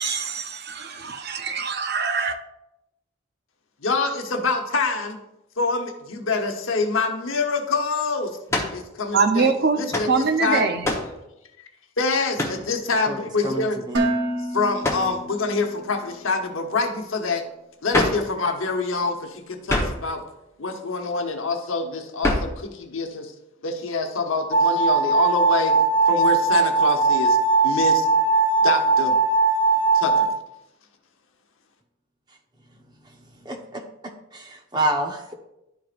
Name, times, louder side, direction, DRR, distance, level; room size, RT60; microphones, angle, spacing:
voice 1, 0.0-2.4 9.1-9.8 10.1-10.9, right 4 dB, 50° right, 0.6 m, -23 dB
voice 2, 3.8-5.2 5.6-8.4 8.7-10.7 12.0-14.1 14.5-17.4 17.8-20.2 20.6-23.3 23.6-25.8 26.1-27.4 27.6-28.0 28.6-29.1 29.9-30.3, left 3 dB, 75° left, 1.0 m, -26 dB
sound 1, 8.5-8.8 9.9-10.1 10.8-11.1 12.4-12.6 14.8-15.1 17.9-18.3 19.7-20.1 22.2-22.6, left 1 dB, 15° left, 0.9 m, -24 dB
voice 3, 13.4-14.0 33.4-33.8 34.3-35.3, right 1 dB, 20° right, 0.8 m, -27 dB
Dishes pots and pans, 13.9-16.0, right 1 dB, 70° right, 0.9 m, -28 dB
sound 2, 24.5-30.3, right 4 dB, 40° left, 1.4 m, -19 dB
12.0 x 4.7 x 2.5 m
head